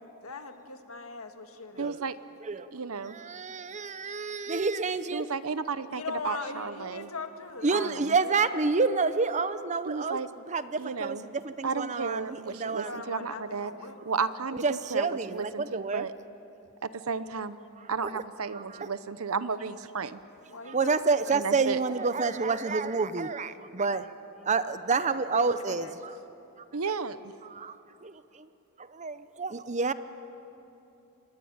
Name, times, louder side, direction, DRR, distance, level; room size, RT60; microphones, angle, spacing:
voice 1, 0.2-2.0 5.9-7.9 8.2-8.6 12.6-14.0 20.5-20.9 24.9-25.9, left 3 dB, 75° left, 6 dB, 1.8 m, -40 dB
voice 2, 1.8-2.2 2.7-3.2 5.1-7.1 7.7-7.9 9.9-10.3 10.8-11.2 11.6-13.7 14.0-15.1 15.3-16.1 16.8-17.6 17.9-20.2 21.3-21.8 26.7-27.3, right 5 dB, 75° right, 13 dB, 0.9 m, -33 dB
voice 3, 2.4-2.7 3.0-5.3 7.6-13.0 14.5-16.1 17.8-18.2 18.5-18.9 20.6-24.1 24.4-26.2 26.6-26.7 27.4-28.5 28.8-29.9, right 4 dB, 35° right, 13 dB, 0.7 m, -29 dB
26.0 x 20.5 x 8.8 m, 2.9 s
head